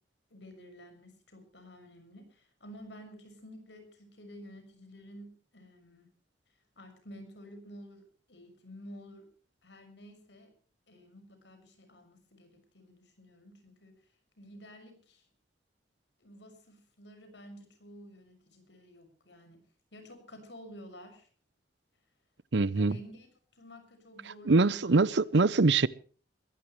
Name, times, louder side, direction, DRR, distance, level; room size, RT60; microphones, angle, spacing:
voice 1, 0.3-6.1 6.8-9.3 9.6-10.5 10.9-13.9 14.4-15.2 16.2-19.6 19.9-21.3 22.7-25.1, equal, 85° left, 6.4 m, -51 dB
voice 2, 22.5-23.0 24.5-25.9, right 3 dB, 80° right, 0.7 m, -23 dB
22.0 x 16.0 x 3.3 m
head